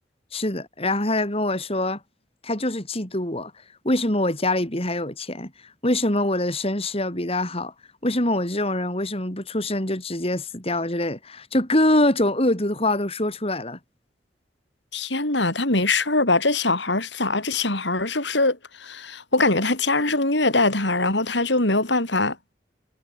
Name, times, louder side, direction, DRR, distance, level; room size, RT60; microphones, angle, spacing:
voice 1, 0.3-2.0 2.4-3.5 3.8-7.7 8.0-13.8, left 1 dB, 30° left, 5.9 m, -24 dB
voice 2, 14.9-22.4, left 2 dB, 75° left, 6.5 m, -22 dB
head